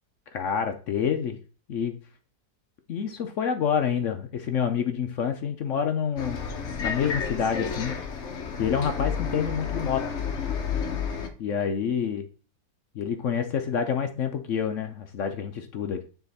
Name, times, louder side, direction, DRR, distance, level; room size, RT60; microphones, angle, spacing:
voice 1, 0.3-1.4 1.7-2.0 2.9-6.4 6.8-8.0 8.6-10.0 11.4-12.3 12.9-16.0, left 7 dB, 70° left, 6 dB, 0.7 m, -27 dB
Bus, 6.2-11.3, left 6 dB, 50° left, 1.0 m, -31 dB
9.2 x 3.9 x 4.1 m, 0.39 s
omnidirectional pair, 2.1 m